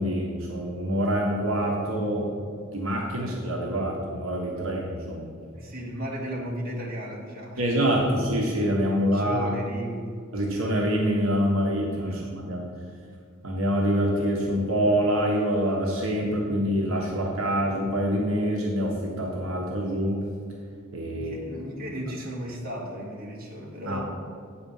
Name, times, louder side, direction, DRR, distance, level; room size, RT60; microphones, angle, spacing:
voice 1, 0.0-2.3 2.7-5.3 7.6-9.6 10.3-12.7 13.4-20.2 20.9-21.3 23.9-24.0, equal, 65° right, -2 dB, 1.3 m, -26 dB
voice 2, 5.5-7.7 8.8-10.2 12.1-12.5 21.1-24.0, equal, 45° right, -2 dB, 1.4 m, -35 dB
8.9 x 4.4 x 7.2 m, 2.1 s
head